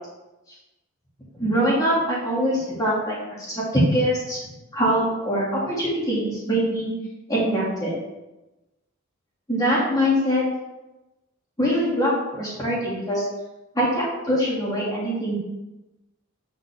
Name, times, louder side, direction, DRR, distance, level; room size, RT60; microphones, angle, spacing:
voice 1, 1.4-4.4 4.7-6.9 7.3-7.9 9.5-10.4 11.6-13.2 13.7-15.4, equal, 15° left, -6 dB, 2.5 m, -23 dB
8.9 x 5.9 x 3.6 m, 1.0 s
head